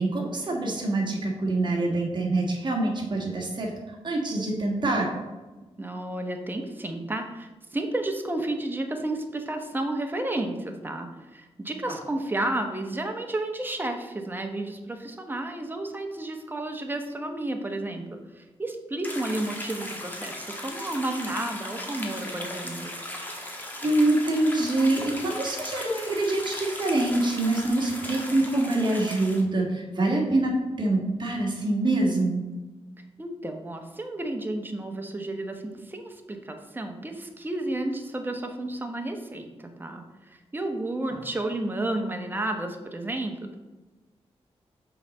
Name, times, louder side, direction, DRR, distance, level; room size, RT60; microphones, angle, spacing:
voice 1, 0.0-3.7 4.0-5.1 23.8-32.4, right 2 dB, 45° right, 0 dB, 1.6 m, -25 dB
voice 2, 5.8-23.0 33.2-43.6, right 1 dB, 20° right, 4 dB, 1.0 m, -32 dB
sound 1, 19.0-29.4, left 1 dB, 15° left, 1.3 m, -37 dB
5.7 x 4.1 x 5.4 m, 1.2 s
cardioid pair, 85°, 11 cm